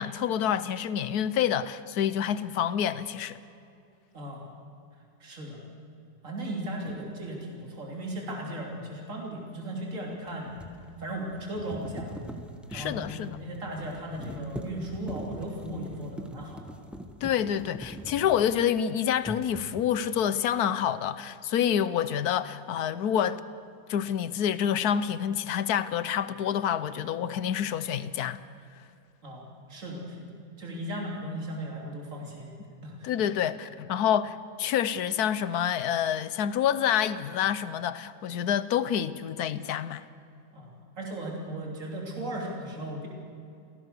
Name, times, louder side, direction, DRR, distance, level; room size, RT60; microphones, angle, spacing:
voice 1, 0.0-3.4 12.7-13.4 17.2-23.4 23.9-28.4 33.0-40.0, left 9 dB, 65° left, 1.2 m, -27 dB
voice 2, 4.1-4.5 5.2-5.6 6.2-10.6 11.0-12.1 12.7-16.7 29.2-32.5 32.8-33.1 40.5-43.1, right 1 dB, 45° right, 3.7 m, -37 dB
sound 1, 6.9-7.0 10.1-18.8 19.2-20.0, equal, ahead, 1.0 m, -43 dB
27.5 x 17.0 x 6.8 m
omnidirectional pair, 2.0 m